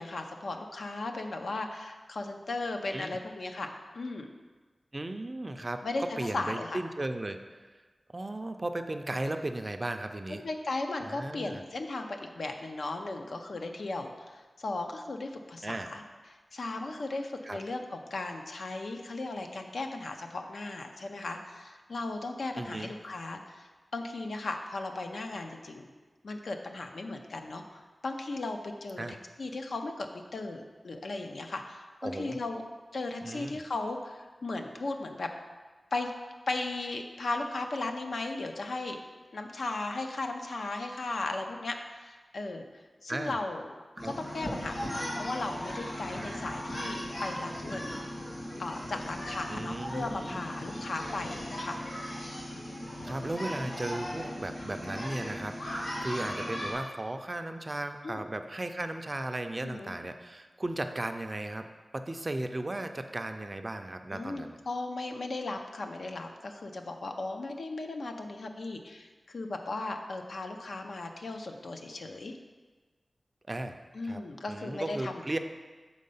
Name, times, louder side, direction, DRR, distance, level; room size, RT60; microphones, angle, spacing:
voice 1, 0.0-3.7 3.9-4.3 5.8-6.8 10.4-16.0 16.3-23.7 23.9-25.9 26.2-32.6 32.9-35.3 35.9-36.1 36.5-39.0 39.3-42.6 43.0-43.7 44.0-48.0 48.6-51.8 58.0-58.2 59.6-59.9 64.1-72.3 73.9-75.4, left 2 dB, 75° left, 4 dB, 0.6 m, -36 dB
voice 2, 4.9-7.6 8.1-10.4 11.0-11.6 15.6-15.9 17.4-17.6 22.6-22.9 29.0-29.1 32.0-32.4 33.2-33.6 43.1-43.4 44.0-44.1 49.5-50.6 53.0-61.7 61.9-64.6 73.5-73.8 74.0-74.2 74.5-75.4, right 1 dB, 30° right, 7 dB, 0.4 m, -36 dB
sound 1, 44.0-56.7, equal, 55° left, 2.3 m, -38 dB
6.4 x 4.2 x 5.4 m, 1.3 s
wide cardioid pair, 100°, 0 cm